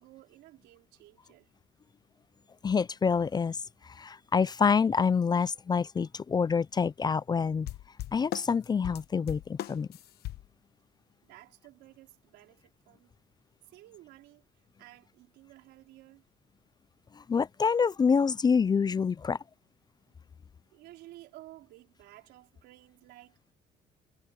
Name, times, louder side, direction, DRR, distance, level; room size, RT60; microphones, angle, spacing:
voice 1, 0.0-1.5 11.2-13.1 13.7-14.4 14.8-16.2 20.7-23.5, right 16 dB, 85° right, 4.4 m, -54 dB
voice 2, 2.6-3.6 3.8-7.7 8.1-9.9 17.2-19.4, left 6 dB, 25° left, 0.4 m, -27 dB
sound 1, 7.7-10.5, left 14 dB, 70° left, 1.0 m, -38 dB
cardioid pair, 110°, 17 cm